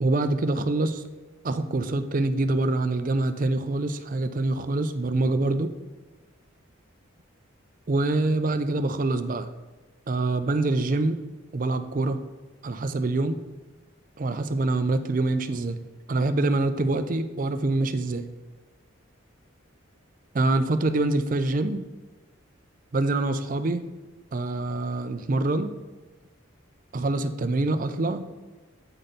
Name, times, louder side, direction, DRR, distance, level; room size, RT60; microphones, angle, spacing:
voice 1, 0.0-1.0 1.4-5.7 7.9-9.5 10.1-11.2 11.5-12.2 12.6-13.4 14.2-15.8 16.1-18.3 20.3-21.8 22.9-23.8 24.3-25.7 26.9-28.2, right 2 dB, 40° right, 10 dB, 0.4 m, -25 dB
8.9 x 4.2 x 5.1 m, 1.3 s
head